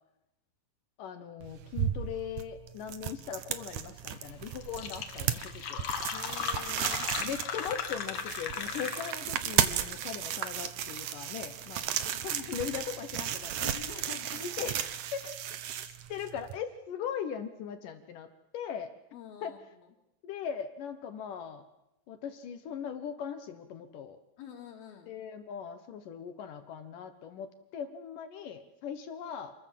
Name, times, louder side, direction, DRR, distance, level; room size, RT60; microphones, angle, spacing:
voice 1, 1.0-5.9 7.2-13.5 14.4-14.8 15.1-15.5 15.8-18.9 19.4-19.5 20.2-21.6 22.1-24.2 25.1-29.5, left 8 dB, 70° left, 9 dB, 2.7 m, -39 dB
sound 1, 1.4-16.6, right 10 dB, 65° right, 2.3 m, -35 dB
Fill (with liquid), 4.3-4.4 4.6-9.4, left 7 dB, 50° left, 2.0 m, -36 dB
voice 2, 6.1-7.1 13.6-14.5 19.1-19.9 24.4-25.2, left 9 dB, 90° left, -3 dB, 4.0 m, -47 dB
28.0 x 21.0 x 7.6 m, 0.86 s
omnidirectional pair, 4.2 m